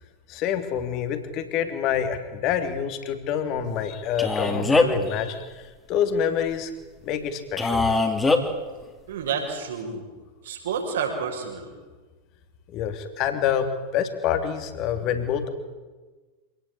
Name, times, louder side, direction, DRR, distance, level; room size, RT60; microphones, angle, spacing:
voice 1, 0.3-6.7 7.0-7.9 12.7-15.5, left 8 dB, 40° left, 8 dB, 3.0 m, -27 dB
Male speech man speaking, 4.2-5.1 7.6-8.4, left 3 dB, 10° left, 3.0 m, -21 dB
voice 2, 9.1-10.0 10.4-11.7, right 6 dB, 60° right, 2 dB, 6.2 m, -29 dB
26.5 x 18.5 x 8.5 m, 1.3 s
figure-of-eight pair, 90°, 0 cm